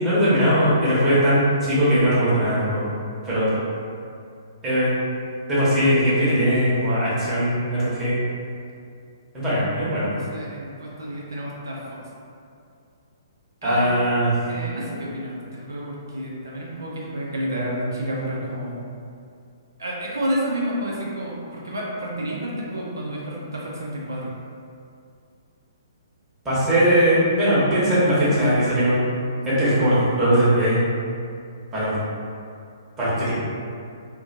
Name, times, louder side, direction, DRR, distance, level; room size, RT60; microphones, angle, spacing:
voice 1, 0.0-2.9 3.2-3.5 4.6-4.9 5.5-8.1 9.3-10.1 13.6-14.3 26.4-29.1 29.4-30.8 31.7-32.0 33.0-33.3, equal, 15° right, -11 dB, 0.9 m, -20 dB
voice 2, 10.1-12.0 13.6-13.9 14.5-18.7 19.8-24.3 29.5-29.9, right 1 dB, 75° right, -5 dB, 0.4 m, -30 dB
2.5 x 2.1 x 2.6 m, 2.4 s
figure-of-eight pair, 120°, 2 cm